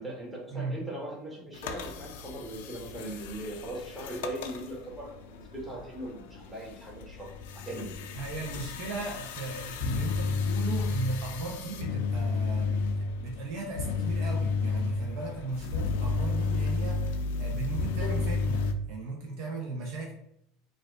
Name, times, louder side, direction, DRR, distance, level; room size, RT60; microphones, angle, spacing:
voice 1, 0.0-8.0, right 1 dB, 15° right, -4 dB, 1.4 m, -40 dB
sound 1, 1.5-18.7, left 4 dB, 85° left, 0.3 m, -32 dB
voice 2, 8.2-12.8 13.2-20.1, right 3 dB, 65° right, -1 dB, 0.7 m, -37 dB
4.1 x 2.5 x 2.4 m, 0.76 s
supercardioid pair, 110°, 0 cm